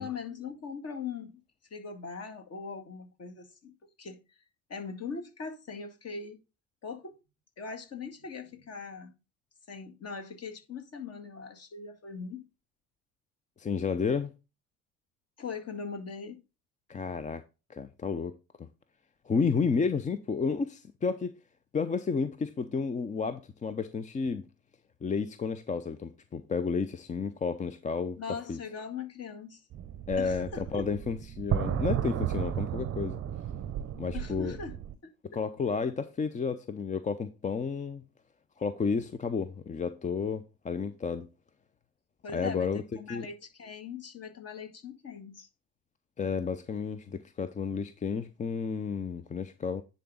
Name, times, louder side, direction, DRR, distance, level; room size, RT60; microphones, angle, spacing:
voice 1, 0.0-1.4 1.7-4.2 4.7-6.4 6.8-7.2 7.6-9.1 9.7-12.4 15.4-16.4 28.2-29.6 30.2-30.8 34.1-34.8 35.0-35.1 42.2-45.5, left 5 dB, 35° left, 2.0 m, -40 dB
voice 2, 13.6-14.3 16.9-17.4 17.7-18.7 19.3-21.3 21.7-24.5 25.0-28.2 28.5-28.6 30.1-33.2 34.0-34.6 35.3-38.0 38.6-41.3 42.3-42.8 43.1-43.3 46.2-49.8, left 5 dB, 20° left, 0.6 m, -31 dB
sound 1, 29.7-34.9, right 10 dB, 35° right, 0.8 m, -33 dB
10.0 x 4.1 x 3.7 m
hypercardioid pair, 65°, 41 cm